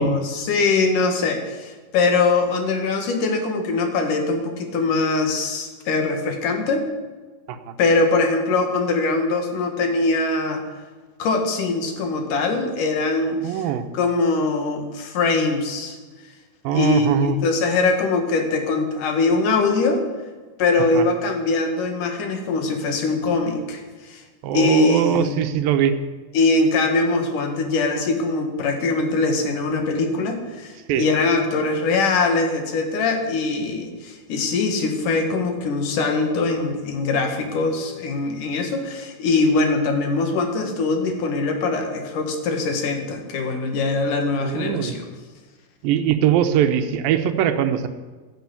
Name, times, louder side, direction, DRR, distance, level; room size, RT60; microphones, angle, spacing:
voice 1, 0.0-6.9 7.8-10.7 11.2-13.6 13.9-16.0 16.7-20.0 20.6-24.2 24.5-25.3 26.3-45.1, left 3 dB, 65° left, 5 dB, 3.3 m, -22 dB
voice 2, 13.4-13.8 16.6-17.4 20.9-21.1 24.4-26.0 30.9-31.1 44.4-45.0 45.8-47.9, right 9 dB, 85° right, 9 dB, 2.7 m, -21 dB
12.5 x 11.0 x 8.4 m, 1.3 s
omnidirectional pair, 4.0 m